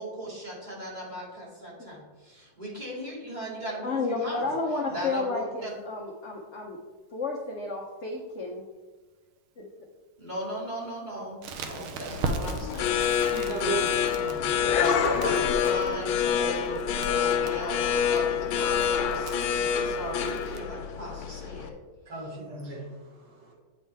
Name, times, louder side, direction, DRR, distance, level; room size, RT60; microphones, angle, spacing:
voice 1, 0.0-4.5 4.9-5.7 10.2-13.7 14.6-21.7, equal, 20° right, -6 dB, 2.4 m, -37 dB
voice 2, 3.8-6.8 7.1-8.7 9.6-9.7, left 3 dB, 60° left, -1 dB, 0.7 m, -31 dB
Crackle, 11.4-20.6, right 3 dB, 85° right, 1.6 m, -39 dB
sound 1, 12.1-21.7, left 8 dB, 80° left, 1.4 m, -27 dB
voice 3, 13.3-13.9 14.2-15.1 22.1-23.5, right 3 dB, 60° right, -2 dB, 1.6 m, -36 dB
8.4 x 5.5 x 3.3 m, 1.2 s
omnidirectional pair, 2.3 m